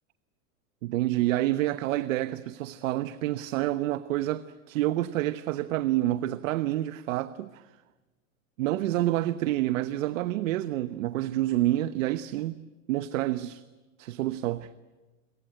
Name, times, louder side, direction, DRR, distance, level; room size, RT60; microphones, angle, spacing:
voice 1, 0.8-7.6 8.6-12.6 12.9-13.6 14.0-14.7, right 15 dB, 70° right, 1.1 m, -28 dB
29.0 x 23.0 x 7.9 m
supercardioid pair, 135°, 40 cm